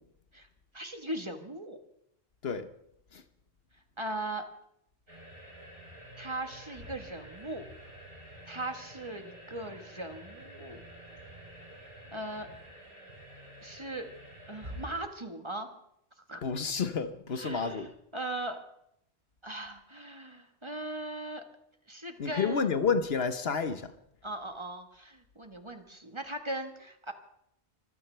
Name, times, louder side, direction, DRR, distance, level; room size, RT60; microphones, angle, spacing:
voice 1, 0.7-1.8 4.0-4.5 6.2-7.7 8.5-10.8 12.1-12.5 13.6-14.1 14.5-15.7 16.3-16.4 17.3-18.6 19.4-21.4 21.9-22.7 24.2-27.1, right 1 dB, 25° right, 6 dB, 1.4 m, -39 dB
sound 1, 5.1-15.0, right 1 dB, 55° right, 6.2 m, -48 dB
voice 2, 16.4-17.9 22.2-23.9, left 5 dB, 65° left, 10 dB, 1.2 m, -30 dB
25.0 x 15.5 x 3.4 m, 0.74 s
omnidirectional pair, 1.1 m